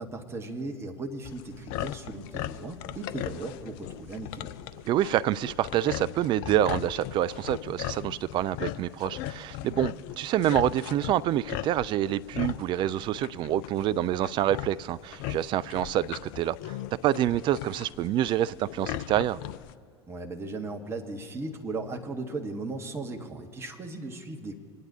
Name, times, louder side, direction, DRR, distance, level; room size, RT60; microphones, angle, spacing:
voice 1, 0.0-4.6 20.1-24.5, right 2 dB, 20° right, 2 dB, 1.4 m, -37 dB
sound 1, 1.2-19.7, left 13 dB, 50° left, 0.5 m, -38 dB
voice 2, 4.9-16.8 17.0-19.4, right 12 dB, 35° right, 16 dB, 0.4 m, -27 dB
27.0 x 9.5 x 2.8 m, 2.2 s
figure-of-eight pair, 75°, 14 cm